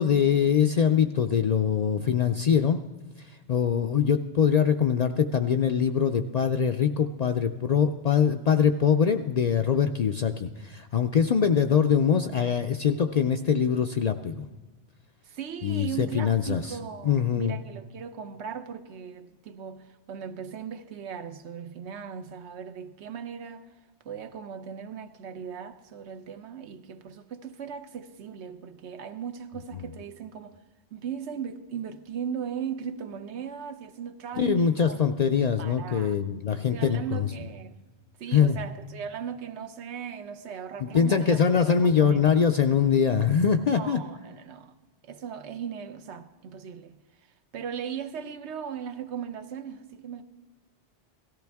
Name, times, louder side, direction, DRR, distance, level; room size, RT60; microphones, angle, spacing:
voice 1, 0.0-2.8 3.5-14.4 15.6-16.6 17.0-17.5 34.4-37.3 38.3-38.6 40.8-44.0, left 7 dB, 55° left, 0.4 m, -23 dB
voice 2, 15.2-23.8 24.0-30.6 30.9-35.0 35.6-36.2 36.5-37.8 38.2-42.2 43.7-44.8 45.0-47.0 47.5-50.2, right 7 dB, 80° right, 1.0 m, -38 dB
17.0 x 13.5 x 3.5 m
omnidirectional pair, 1.1 m